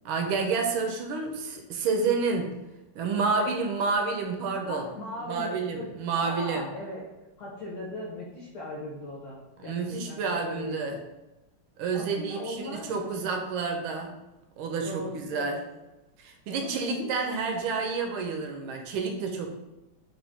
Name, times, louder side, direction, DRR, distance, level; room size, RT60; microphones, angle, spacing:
voice 1, 0.0-2.5 2.9-4.9 5.2-6.7 9.6-11.0 11.8-14.1 14.6-15.6 16.2-19.5, right 4 dB, 80° right, 4 dB, 1.4 m, -29 dB
voice 2, 4.7-5.9 6.2-7.0 7.4-10.2 10.5-11.0 11.9-13.1 14.8-15.6 16.6-17.1, left 2 dB, 65° left, -6 dB, 1.2 m, -38 dB
4.0 x 2.5 x 3.5 m, 1.0 s
omnidirectional pair, 2.3 m